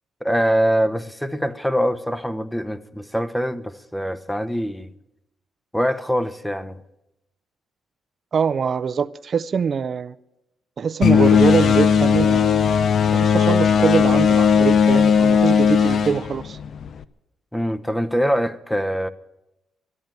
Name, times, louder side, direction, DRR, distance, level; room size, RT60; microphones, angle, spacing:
voice 1, 0.2-4.9 5.7-6.8 17.5-19.1, equal, 5° left, 0.8 m, -23 dB
voice 2, 8.3-10.2 10.8-12.5 13.1-16.6, right 6 dB, 45° right, 0.4 m, -23 dB
sound 1, 11.0-17.0, left 7 dB, 55° left, 0.6 m, -17 dB
12.5 x 11.0 x 9.0 m
cardioid pair, 90°, 0 cm